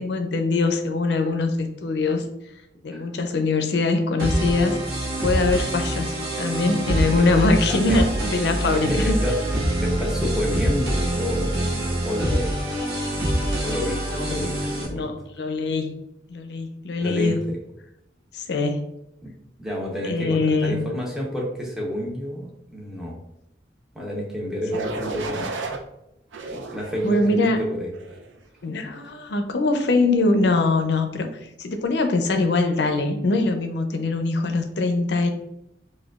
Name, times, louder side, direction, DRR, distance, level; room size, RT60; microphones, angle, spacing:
voice 1, 0.0-2.2 2.8-4.8 5.2-9.1 14.1-14.4 14.9-15.9 16.3-17.4 18.3-18.8 20.0-20.8 27.0-27.7 28.6-35.3, left 3 dB, 65° left, 6 dB, 0.5 m, -23 dB
sound 1, 4.2-14.9, right 1 dB, 55° right, 0.9 m, -25 dB
voice 2, 8.8-9.4 9.8-12.7 13.6-15.1 17.0-17.6 19.2-19.3 19.6-23.2 23.9-25.5 26.5-28.1 28.8-28.9, equal, 5° right, -3 dB, 0.7 m, -29 dB
sound 2, 24.7-25.8 26.3-27.4 27.9-28.3, right 3 dB, 85° right, 0.5 m, -33 dB
4.9 x 2.2 x 2.3 m, 0.83 s
head